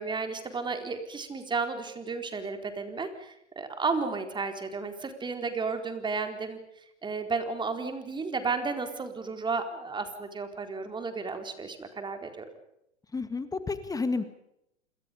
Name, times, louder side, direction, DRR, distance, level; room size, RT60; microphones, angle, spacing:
voice 1, 0.0-6.6 7.0-12.5, right 4 dB, 15° right, 6 dB, 4.3 m, -33 dB
voice 2, 13.1-14.2, left 4 dB, 10° left, 11 dB, 2.1 m, -30 dB
28.0 x 27.5 x 5.3 m, 0.79 s
figure-of-eight pair, 110°, 35 cm